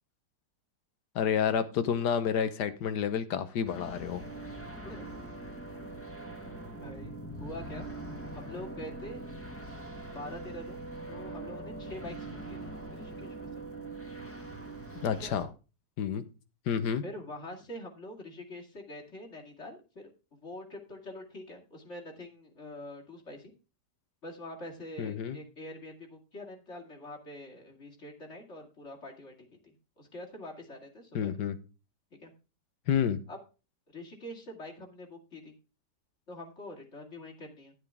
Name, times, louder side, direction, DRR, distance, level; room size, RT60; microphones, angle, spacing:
voice 1, 1.1-4.2 15.0-15.5 16.0-16.2 16.7-17.0 25.0-25.4 31.1-31.6 32.9-33.2, left 8 dB, 80° left, 1.6 m, -29 dB
sound 1, 3.6-15.4, right 2 dB, 10° left, 1.3 m, -42 dB
voice 2, 4.8-5.2 5.8-5.9 6.4-6.5 6.8-7.9 8.2-9.2 10.0-10.8 11.1-13.6 15.2-15.3 17.0-20.1 20.4-23.5 24.2-29.3 29.6-31.3 32.2-32.3 33.3-33.4 33.9-35.6 36.3-37.7, left 1 dB, 40° left, 2.7 m, -45 dB
11.5 x 8.2 x 3.5 m
omnidirectional pair, 1.8 m